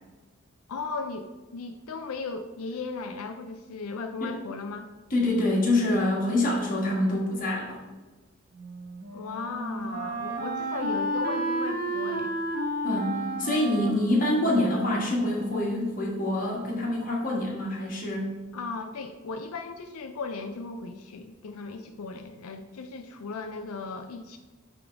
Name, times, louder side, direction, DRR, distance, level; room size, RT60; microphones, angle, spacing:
voice 1, 0.7-4.9 9.1-12.4 18.5-24.4, left 4 dB, 85° left, 6 dB, 0.4 m, -36 dB
voice 2, 5.1-7.8 12.8-18.3, left 1 dB, 40° left, -3 dB, 1.6 m, -26 dB
Wind instrument woodwind instrument, 8.5-15.4, right 1 dB, 45° right, 0.8 m, -32 dB
8.6 x 3.7 x 3.4 m, 1.3 s
head